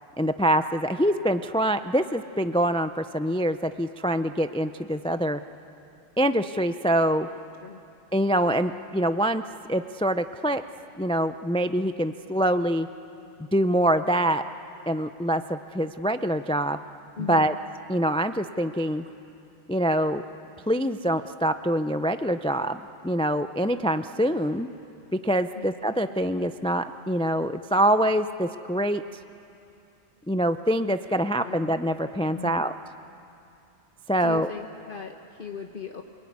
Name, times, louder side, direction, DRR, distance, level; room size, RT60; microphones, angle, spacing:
voice 1, 0.2-5.4 6.2-7.3 8.1-9.4 9.7-10.6 11.0-12.9 13.5-14.5 14.9-16.8 17.3-17.5 17.9-19.0 19.7-20.2 20.7-24.7 25.1-29.0 30.3-32.7 34.1-34.5, right 1 dB, 10° left, 10 dB, 0.3 m, -25 dB
voice 2, 17.2-17.6 25.5-25.7 31.4-31.6 32.3-32.7 34.2-36.0, left 6 dB, 55° left, 3 dB, 1.2 m, -38 dB
28.5 x 21.0 x 9.5 m, 2.7 s
omnidirectional pair, 1.1 m